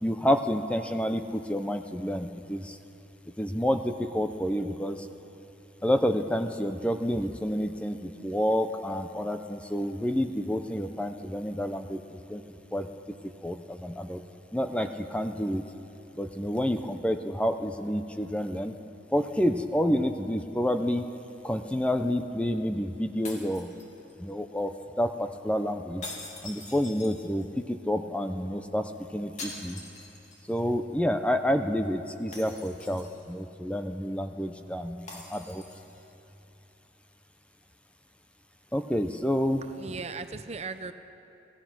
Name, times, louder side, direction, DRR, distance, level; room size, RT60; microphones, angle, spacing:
voice 1, 0.0-2.8 3.4-5.0 5.8-12.0 12.3-12.4 12.7-12.9 13.4-14.2 14.5-15.6 16.2-18.7 19.1-21.1 21.4-23.7 24.2-26.0 26.4-29.8 30.5-35.6 38.7-39.6, equal, 5° left, 7 dB, 0.6 m, -29 dB
sound 1, 23.2-24.3 26.0-27.6 29.4-30.6 30.9-31.0 32.3-33.4 35.1-36.0, left 2 dB, 35° left, 2.7 m, -44 dB
voice 2, 39.6-40.9, right 4 dB, 35° right, 10 dB, 0.6 m, -37 dB
25.5 x 17.0 x 6.1 m, 3.0 s
head